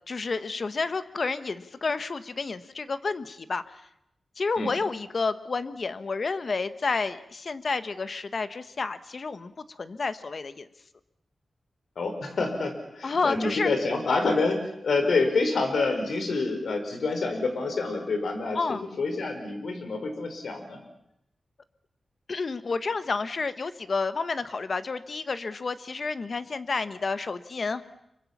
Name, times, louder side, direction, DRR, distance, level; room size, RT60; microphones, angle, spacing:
voice 1, 0.1-3.6 4.4-9.5 9.8-10.7 13.0-13.7 18.5-18.8 22.3-27.8, left 4 dB, 45° left, 12 dB, 1.1 m, -30 dB
voice 2, 12.0-20.8, left 3 dB, 80° left, 6 dB, 4.9 m, -27 dB
26.0 x 23.5 x 7.3 m, 0.79 s
wide cardioid pair, 140°, 0 cm